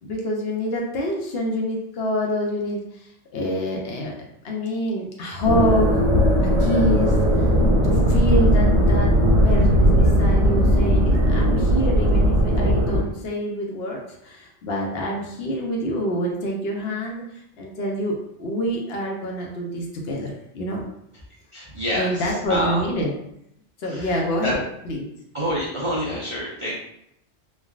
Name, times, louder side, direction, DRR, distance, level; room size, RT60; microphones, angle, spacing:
voice 1, 0.0-4.1 4.4-5.9 6.4-7.5 7.8-9.1 9.4-17.2 17.6-20.8 22.0-23.1 23.8-25.1, equal, 65° left, -1 dB, 0.8 m, -26 dB
sound 1, 5.4-13.0, equal, 90° right, 1.1 m, -18 dB
voice 2, 21.5-22.8 23.8-24.5 25.3-26.8, equal, 45° right, -8 dB, 0.4 m, -27 dB
3.3 x 2.2 x 2.3 m, 0.77 s
omnidirectional pair, 1.2 m